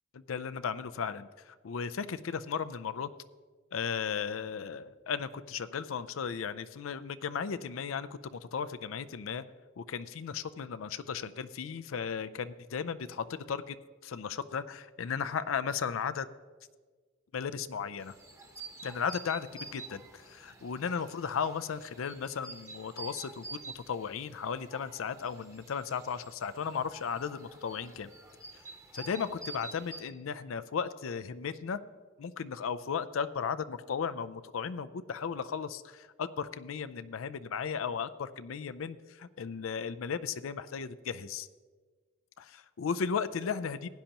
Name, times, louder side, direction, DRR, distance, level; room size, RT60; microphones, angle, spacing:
voice 1, 0.1-3.1 3.7-9.4 9.8-13.8 14.0-16.3 17.3-18.1 18.8-28.1 28.9-31.8 32.2-41.5 42.4-43.9, left 6 dB, 90° left, 14 dB, 0.5 m, -35 dB
sound 1, 18.0-30.0, right 3 dB, 15° right, 0.9 m, -48 dB
16.0 x 10.0 x 2.9 m, 1.5 s
head